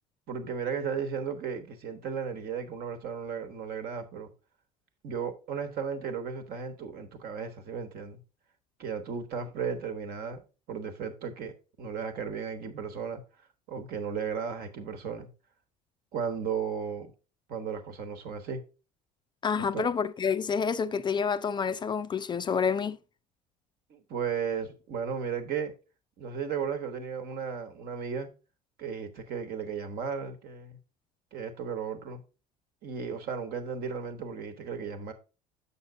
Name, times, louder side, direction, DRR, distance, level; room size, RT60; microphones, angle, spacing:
voice 1, 0.3-4.3 5.0-8.2 8.8-10.4 10.7-13.2 13.7-15.3 16.1-17.1 17.5-18.6 19.6-19.9 23.9-25.7 26.2-28.3 28.8-30.8 31.3-32.2 32.8-35.1, right 6 dB, 50° right, 1.2 m, -35 dB
voice 2, 19.4-23.0, left 6 dB, 25° left, 0.4 m, -28 dB
7.0 x 6.1 x 3.6 m
hypercardioid pair, 65°, 20 cm